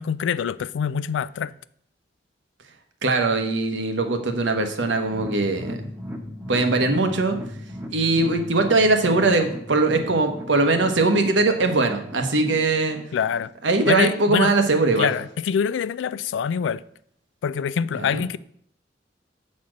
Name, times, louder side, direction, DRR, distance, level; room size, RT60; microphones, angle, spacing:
voice 1, 0.0-1.5 13.1-13.5 13.9-14.5 15.0-16.8 17.4-18.4, left 7 dB, 85° left, 0.3 m, -25 dB
voice 2, 3.0-5.8 6.5-7.4 7.9-13.0 13.6-15.1 18.1-18.2, right 3 dB, 85° right, 1.1 m, -21 dB
sound 1, 5.0-14.3 14.6-14.7 15.1-15.2, equal, 10° right, 0.9 m, -37 dB
7.3 x 4.2 x 6.3 m
head